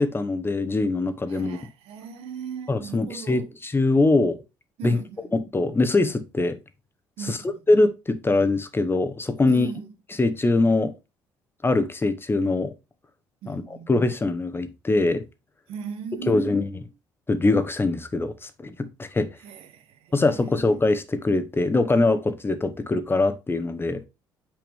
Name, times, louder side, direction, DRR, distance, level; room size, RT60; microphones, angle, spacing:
voice 1, 0.0-1.6 2.7-4.4 4.8-5.0 5.3-6.6 7.3-7.4 7.7-9.7 10.2-10.9 11.6-12.7 13.5-13.6 13.9-15.2 16.3-16.7 17.3-19.3 20.1-24.0, left 2 dB, 20° left, 1.0 m, -22 dB
voice 2, 1.3-3.5 4.8-5.2 7.2-7.6 9.5-9.9 13.4-13.9 15.7-16.9 19.4-20.7, right 6 dB, 70° right, 1.2 m, -38 dB
6.0 x 5.0 x 3.4 m
hypercardioid pair, 60°, 10 cm